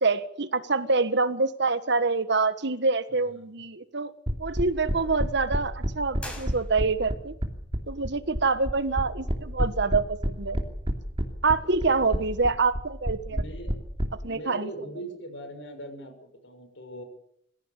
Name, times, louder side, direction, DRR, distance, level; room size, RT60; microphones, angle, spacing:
voice 1, 0.0-4.1 4.4-7.3 7.9-10.6 11.4-13.4 14.2-14.7, right 3 dB, 65° right, 12 dB, 1.5 m, -26 dB
voice 2, 3.1-3.6 4.9-5.2 8.0-8.3 11.6-12.2 13.3-13.8 14.2-17.0, right 1 dB, 75° left, 8 dB, 6.3 m, -42 dB
sound 1, 4.3-14.1, equal, 30° right, 2.9 m, -28 dB
sound 2, 6.1-7.2, left 1 dB, 5° left, 6.7 m, -43 dB
24.5 x 15.5 x 8.3 m, 0.73 s
head